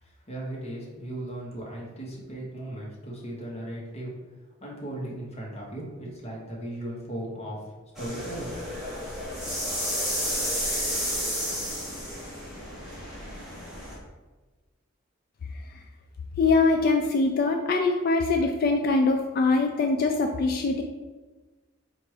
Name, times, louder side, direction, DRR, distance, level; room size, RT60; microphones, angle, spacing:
voice 1, 0.0-4.1 4.6-7.6 8.0-8.5, right 1 dB, 30° left, -3 dB, 1.1 m, -37 dB
sound 1, 7.9-13.9, equal, ahead, 1.2 m, -31 dB
voice 2, 16.4-20.8, left 3 dB, 50° left, 4 dB, 0.3 m, -23 dB
4.4 x 2.5 x 4.8 m, 1.2 s
head